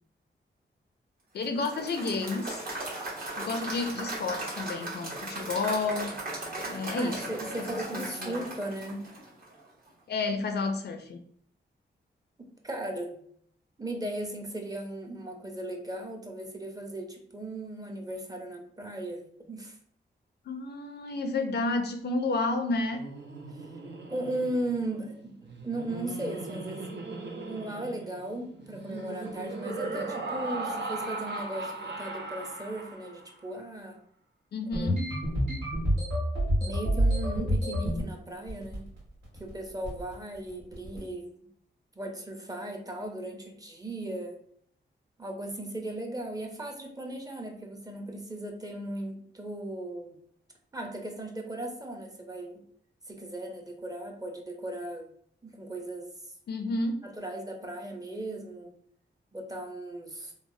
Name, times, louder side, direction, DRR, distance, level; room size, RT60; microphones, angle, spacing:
voice 1, 1.3-2.6 3.4-6.2 6.7-7.2 7.6-8.4 10.1-11.2 20.5-23.0 34.5-35.0 56.5-57.1, left 3 dB, 60° left, 6 dB, 0.4 m, -31 dB
Applause / Crowd, 1.4-9.6, right 2 dB, 50° right, 1.1 m, -37 dB
voice 2, 7.0-9.0 12.4-13.2 13.8-19.8 23.6-23.7 24.1-26.9 27.5-34.0 34.8-34.9 35.3-35.5 36.6-38.8 39.4-41.3 42.0-44.4 45.2-50.2 50.7-52.6 53.1-55.1 55.4-56.1 57.0-58.7 59.3-60.3, right 1 dB, 20° right, 2 dB, 0.6 m, -37 dB
Laughter, 22.8-33.3, right 3 dB, 70° right, 0.5 m, -38 dB
sound 1, 34.7-38.0 38.5-39.0 39.2-39.5 39.8-40.1 40.7-41.0, equal, 90° right, 1.3 m, -27 dB
3.1 x 2.0 x 2.6 m, 0.62 s
cardioid pair, 75°, 19 cm